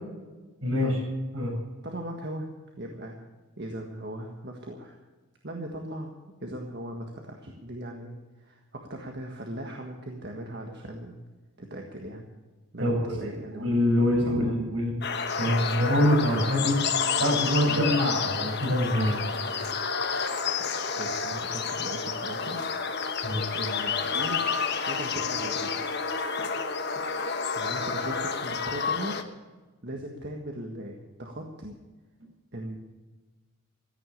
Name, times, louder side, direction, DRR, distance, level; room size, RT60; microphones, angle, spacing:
voice 1, 0.6-1.0 1.3-1.5 12.8-13.1 13.6-15.0 15.4-19.2 23.2-23.4, left 1 dB, 70° right, 0 dB, 6.9 m, -25 dB
voice 2, 1.8-2.5 2.8-3.2 3.6-5.0 5.4-6.1 6.4-11.2 11.6-12.3 12.7-13.9 14.2-14.6 17.7-17.8 21.0-22.6 23.5-25.8 27.6-29.2 29.8-31.8 32.5-32.8, right 1 dB, 50° right, 2 dB, 1.6 m, -38 dB
sound 1, 15.0-29.2, left 5 dB, 50° left, 1.2 m, -30 dB
15.0 x 9.8 x 8.5 m, 1.3 s
head